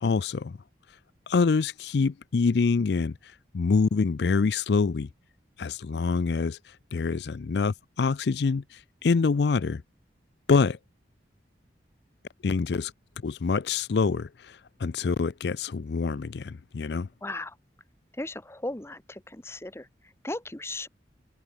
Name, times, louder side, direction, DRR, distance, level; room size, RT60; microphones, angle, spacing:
voice 1, 0.0-0.6 1.3-5.1 5.6-9.8 10.5-10.8 12.4-12.9 13.2-17.1, left 4 dB, 60° left, 0.4 m, -26 dB
voice 2, 17.2-17.6 18.1-20.9, left 2 dB, 15° left, 1.1 m, -37 dB
head